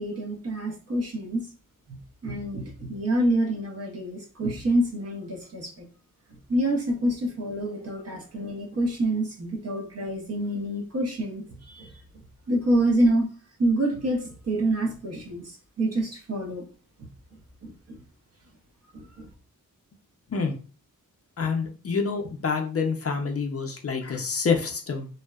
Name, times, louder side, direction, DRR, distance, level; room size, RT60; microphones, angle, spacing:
voice 1, 0.0-1.4 1.9-5.8 6.5-11.9 12.5-13.3 13.6-16.6 17.6-18.0 18.9-19.3, right 1 dB, 45° right, 0 dB, 0.7 m, -27 dB
voice 2, 21.4-25.1, left 5 dB, 40° left, 2 dB, 0.5 m, -27 dB
2.6 x 2.1 x 2.3 m, 0.38 s
wide cardioid pair, 80°, 35 cm